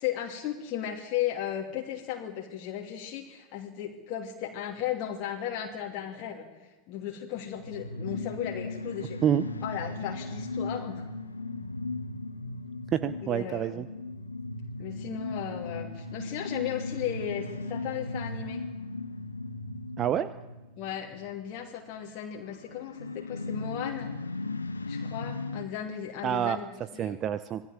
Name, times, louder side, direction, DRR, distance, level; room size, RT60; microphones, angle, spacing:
voice 1, 0.0-6.5 6.9-9.2 9.6-11.0 13.2-13.9 14.8-18.6 20.8-24.1 24.9-27.2, left 10 dB, 40° left, -1 dB, 2.7 m, -35 dB
sound 1, 7.3-21.3 21.9-25.7, left 3 dB, 80° left, 1.5 m, -37 dB
voice 2, 12.9-13.9 20.0-20.3 26.2-26.6 27.0-27.6, right 9 dB, 30° right, 14 dB, 0.8 m, -27 dB
26.5 x 18.5 x 7.6 m, 1.2 s
figure-of-eight pair, 90°, 0 cm